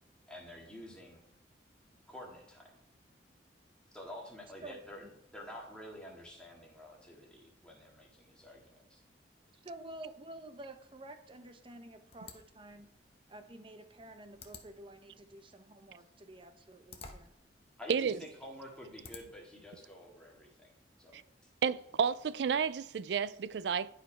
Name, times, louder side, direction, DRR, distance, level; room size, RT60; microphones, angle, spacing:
voice 1, 0.3-1.2 2.1-2.7 3.9-5.0 5.3-9.0 17.8-20.7 21.0-21.2, left 1 dB, 5° left, 1.9 m, -49 dB
voice 2, 9.5-12.9 13.3-17.3, right 1 dB, 30° right, 0.8 m, -50 dB
sound 1, 12.1-19.6, left 4 dB, 35° left, 0.9 m, -56 dB
voice 3, 21.6-23.9, right 6 dB, 70° right, 0.3 m, -31 dB
11.0 x 5.0 x 4.4 m
head